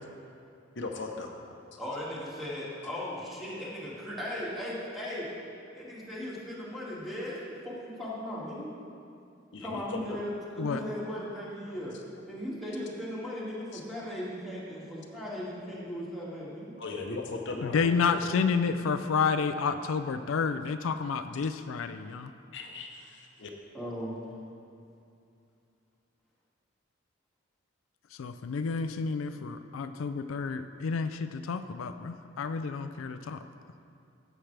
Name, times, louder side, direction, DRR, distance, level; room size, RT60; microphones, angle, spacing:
voice 1, 0.8-1.3 9.5-10.2 16.8-17.9 18.2-18.3 22.5-23.5, left 3 dB, 60° left, 2 dB, 0.8 m, -38 dB
voice 2, 1.8-5.2 5.7-7.4 7.6-8.7 9.6-11.9 12.3-16.8 23.7-24.2, left 1 dB, ahead, -8 dB, 2.2 m, -37 dB
voice 3, 17.6-22.3 28.2-33.4, left 5 dB, 90° left, 10 dB, 0.4 m, -30 dB
14.5 x 7.8 x 3.4 m, 2.5 s
head